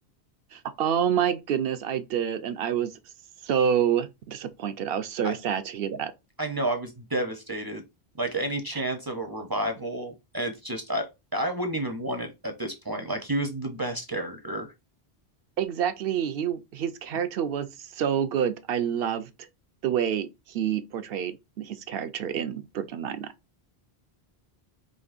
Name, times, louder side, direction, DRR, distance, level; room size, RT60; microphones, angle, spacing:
voice 1, 0.5-3.0 3.4-6.1 8.7-8.8 15.6-19.3 19.8-23.3, right 8 dB, 70° right, 0.8 m, -28 dB
voice 2, 6.4-7.8 8.2-11.1 11.3-14.7, right 1 dB, 25° right, 0.5 m, -30 dB
5.2 x 3.0 x 2.4 m
omnidirectional pair, 1.1 m